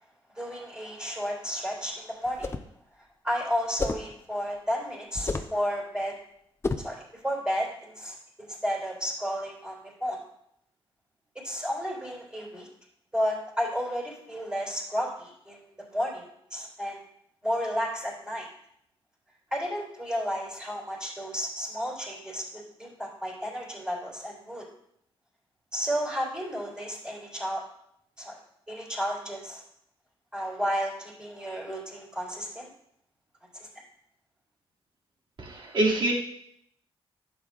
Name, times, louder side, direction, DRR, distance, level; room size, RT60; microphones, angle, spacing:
voice 1, 0.3-2.5 3.2-6.2 6.8-10.2 11.4-12.7 13.1-17.0 17.4-18.5 19.5-24.6 25.7-27.6 28.2-28.4 28.7-29.6 30.3-32.7 33.5-33.7, equal, 10° right, -4 dB, 3.8 m, -32 dB
sound 1, 2.3-2.7 3.8-4.1 5.1-5.6 6.6-7.0, left 3 dB, 25° left, 0.6 m, -30 dB
voice 2, 35.4-36.1, right 1 dB, 55° right, -3 dB, 2.3 m, -25 dB
11.0 x 8.1 x 2.4 m, 0.73 s
cardioid pair, 95°, 10 cm